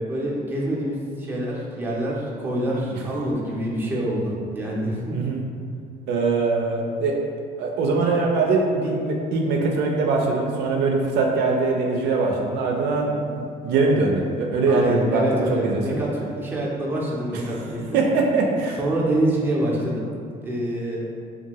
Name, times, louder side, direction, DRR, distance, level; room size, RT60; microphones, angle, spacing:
voice 1, 0.1-5.1 14.7-18.0 18.8-20.1 20.4-21.0, right 1 dB, 10° right, -5 dB, 0.6 m, -26 dB
voice 2, 5.1-5.4 6.1-7.2 7.6-16.0 17.3-17.4 17.9-18.8, right 3 dB, 85° right, 0 dB, 0.4 m, -22 dB
2.7 x 2.3 x 2.9 m, 2.3 s
cardioid pair, 110°, 17 cm